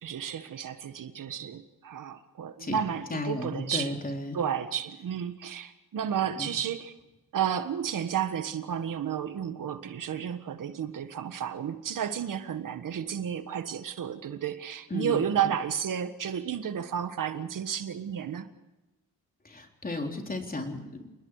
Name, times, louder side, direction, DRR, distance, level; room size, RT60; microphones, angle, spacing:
voice 1, 0.0-3.9 4.3-6.9 7.3-18.5, right 8 dB, 70° right, 10 dB, 1.5 m, -32 dB
voice 2, 3.1-4.4 6.4-6.5 14.9-15.2 19.4-21.1, left 2 dB, 25° left, 3 dB, 3.7 m, -34 dB
28.0 x 20.5 x 4.9 m, 1.0 s
cardioid pair, 105°, 33 cm